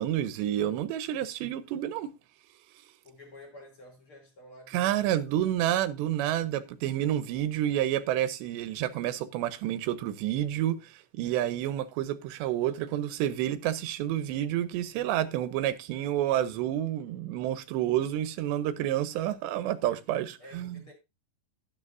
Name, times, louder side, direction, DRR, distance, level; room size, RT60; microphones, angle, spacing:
voice 1, 0.0-2.1 4.7-20.8, right 12 dB, 90° right, 3.1 m, -29 dB
voice 2, 3.0-5.5 16.0-16.1 20.4-20.9, left 1 dB, 30° left, 5.3 m, -51 dB
12.5 x 11.0 x 2.6 m
omnidirectional pair, 4.9 m